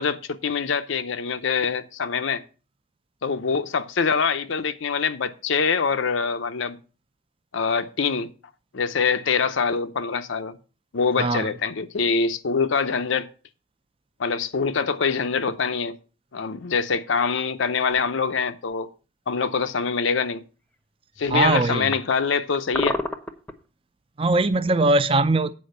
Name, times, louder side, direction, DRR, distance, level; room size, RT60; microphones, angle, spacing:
voice 1, 0.0-2.4 3.2-6.8 7.5-8.3 8.7-10.6 10.9-13.3 14.2-16.0 16.3-18.9 19.3-20.4 21.2-23.0, left 5 dB, 80° left, 0.6 m, -24 dB
voice 2, 11.2-11.5 21.3-21.9 24.2-25.5, right 2 dB, 30° right, 0.5 m, -21 dB
sound 1, 17.9-18.1 21.2-22.2 22.5-23.5, left 2 dB, 10° left, 0.7 m, -29 dB
8.5 x 5.0 x 6.4 m
head